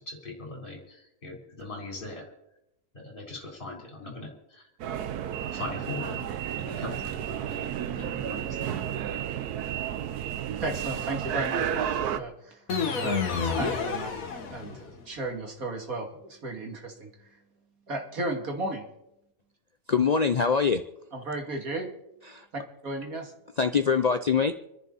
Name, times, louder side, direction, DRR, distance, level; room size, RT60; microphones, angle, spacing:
voice 1, 0.0-2.3 2.9-4.7 5.5-6.3 6.6-8.7, left 2 dB, 35° left, -1 dB, 4.1 m, -40 dB
sound 1, 4.8-12.2, right 9 dB, 80° right, 1.3 m, -32 dB
voice 2, 10.6-12.6 13.0-14.1 14.4-17.3 17.9-18.9 21.1-21.9 22.5-23.3, right 2 dB, 65° right, 2 dB, 3.1 m, -34 dB
sound 2, 12.7-15.0, left 5 dB, 65° left, 1.8 m, -29 dB
voice 3, 19.9-20.9 22.3-22.5 23.6-24.5, left 5 dB, 90° left, 9 dB, 0.3 m, -24 dB
27.5 x 11.0 x 4.2 m, 0.85 s
omnidirectional pair, 1.6 m